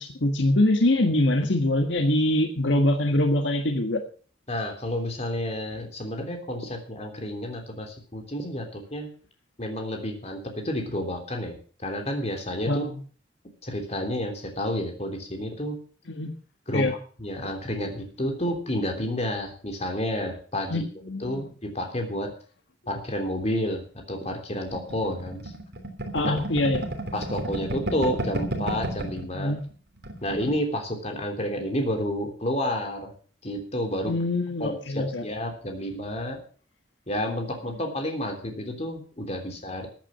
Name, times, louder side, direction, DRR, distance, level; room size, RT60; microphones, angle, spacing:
voice 1, 0.0-4.0 12.7-13.0 16.1-16.3 16.7-16.9 20.7-21.5 26.1-26.9 29.3-29.6 34.1-35.3, left 1 dB, 70° left, 5 dB, 1.6 m, -24 dB
voice 2, 4.5-9.1 9.6-12.8 13.6-15.8 16.7-20.8 21.2-22.3 22.9-25.5 27.1-29.5 30.2-33.1 33.4-34.1 34.6-36.4 37.1-39.9, equal, 35° left, 4 dB, 3.3 m, -30 dB
sound 1, 24.7-29.3 29.6-29.7 30.0-30.6, right 1 dB, 60° right, 3.3 m, -32 dB
15.0 x 8.8 x 6.4 m, 0.42 s
head